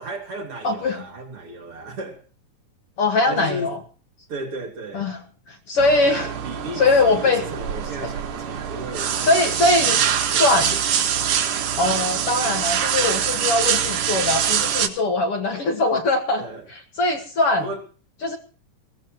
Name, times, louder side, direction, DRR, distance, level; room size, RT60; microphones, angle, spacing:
voice 1, 0.0-2.2 3.3-3.8 4.3-5.1 6.1-10.8 16.4-16.7 17.6-17.8, right 1 dB, 45° right, 3.2 m, -35 dB
voice 2, 0.6-1.0 3.0-3.8 4.9-5.1 5.7-6.3 6.8-7.4 8.0-8.1 9.2-10.7 11.8-16.4 17.0-17.7 18.2-18.4, left 2 dB, 50° left, 2.1 m, -21 dB
sound 1, 5.8-14.9, right 8 dB, 75° right, 3.1 m, -24 dB
21.5 x 16.5 x 2.9 m
omnidirectional pair, 3.8 m